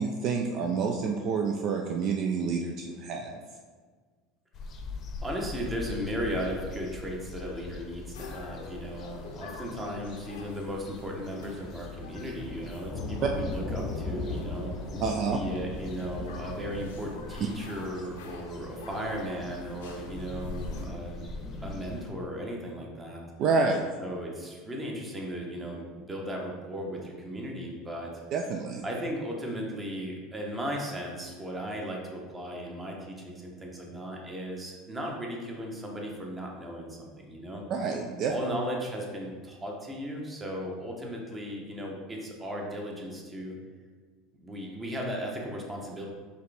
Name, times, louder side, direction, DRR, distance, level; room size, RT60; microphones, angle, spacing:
voice 1, 0.0-3.4 15.0-15.4 23.4-23.8 28.3-28.8 37.7-38.3, right 5 dB, 55° right, 2 dB, 0.4 m, -28 dB
sound 1, 4.5-22.1, left 3 dB, 40° left, 0.7 m, -40 dB
voice 2, 5.2-14.7 15.3-21.2 21.6-23.2 24.0-28.1 28.8-37.6 38.3-43.6 44.4-46.0, equal, 20° right, 0 dB, 1.0 m, -36 dB
sound 2, 8.1-20.9, left 3 dB, 85° left, 0.6 m, -46 dB
4.6 x 3.4 x 3.4 m, 1.5 s
supercardioid pair, 95°, 0 cm